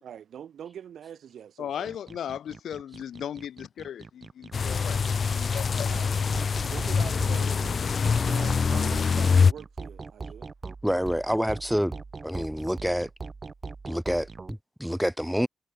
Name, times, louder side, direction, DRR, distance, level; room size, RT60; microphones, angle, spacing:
voice 1, 0.0-1.9 5.9-6.1 6.7-7.6 8.2-10.5, right 9 dB, 75° right, 3.9 m, -43 dB
voice 2, 1.6-5.9, left 9 dB, 80° left, 0.9 m, -37 dB
sound 1, 1.8-14.5, right 4 dB, 35° right, 2.3 m, -41 dB
sound 2, 4.5-9.5, left 5 dB, 50° left, 0.7 m, -24 dB
voice 3, 10.8-11.9 12.2-13.1 13.9-15.5, equal, ahead, 1.0 m, -27 dB
cardioid pair, 75°, 0 cm